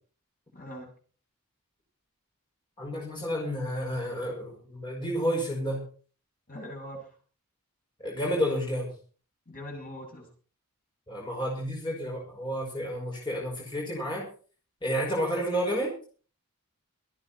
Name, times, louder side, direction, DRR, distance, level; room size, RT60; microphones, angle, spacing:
voice 1, 0.5-0.9 6.5-7.0 9.5-10.3, equal, 40° left, 0 dB, 7.5 m, -41 dB
voice 2, 2.8-5.8 8.0-8.9 11.1-14.2 14.8-15.9, equal, 20° left, -3 dB, 5.7 m, -30 dB
25.0 x 9.7 x 4.3 m, 0.40 s
head